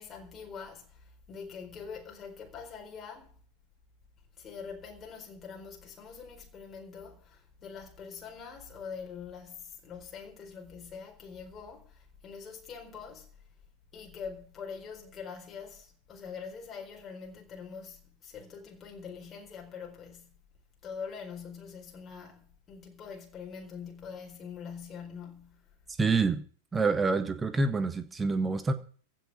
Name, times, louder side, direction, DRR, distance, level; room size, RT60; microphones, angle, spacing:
voice 1, 0.0-3.4 4.4-13.3 13.9-20.4 20.8-25.7, left 6 dB, 25° left, 4.3 m, -44 dB
voice 2, 26.0-26.4 26.7-28.7, right 4 dB, 15° right, 1.4 m, -27 dB
15.5 x 6.4 x 9.9 m
figure-of-eight pair, 90°, 0 cm